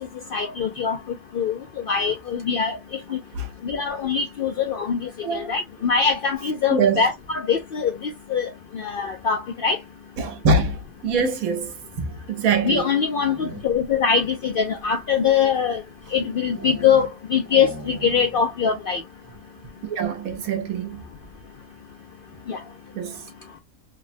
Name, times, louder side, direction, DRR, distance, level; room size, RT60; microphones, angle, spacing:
voice 1, 0.3-1.0 1.3-1.6 1.9-2.8 3.1-3.2 3.6-9.8 12.6-15.8 16.1-19.0 22.5-22.6, left 6 dB, 75° left, 0.5 m, -23 dB
voice 2, 5.2-5.5 6.7-7.0 10.2-12.9 19.8-21.0 22.9-23.3, right 4 dB, 90° right, 1.2 m, -24 dB
sound 1, 13.0-13.9 14.6-17.2 17.4-18.5 18.8-18.9 19.2-19.6, right 2 dB, 20° right, 0.7 m, -40 dB
3.3 x 2.1 x 2.5 m
omnidirectional pair, 1.4 m